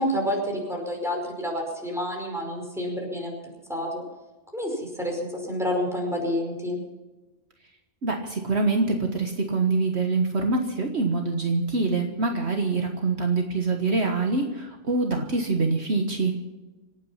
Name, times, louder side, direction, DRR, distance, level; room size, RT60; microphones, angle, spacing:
voice 1, 0.0-3.3 3.7-4.0 4.5-6.8, equal, ahead, 0 dB, 5.2 m, -29 dB
voice 2, 8.0-16.4, right 3 dB, 60° right, 3 dB, 1.7 m, -25 dB
26.0 x 9.4 x 5.7 m, 1.1 s
omnidirectional pair, 1.3 m